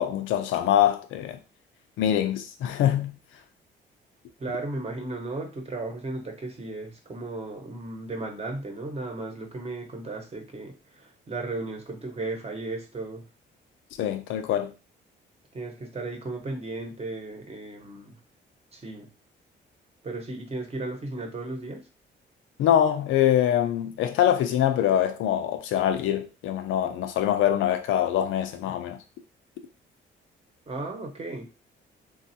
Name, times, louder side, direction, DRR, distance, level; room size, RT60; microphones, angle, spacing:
voice 1, 0.0-1.4 2.0-3.2 14.0-14.7 22.6-29.0, left 10 dB, 80° left, 0.5 m, -24 dB
voice 2, 4.4-13.2 15.5-18.2 18.7-19.1 20.0-21.8 30.7-31.5, right 2 dB, 30° right, 0.9 m, -35 dB
3.2 x 2.3 x 2.7 m
cardioid pair, 90°, 20 cm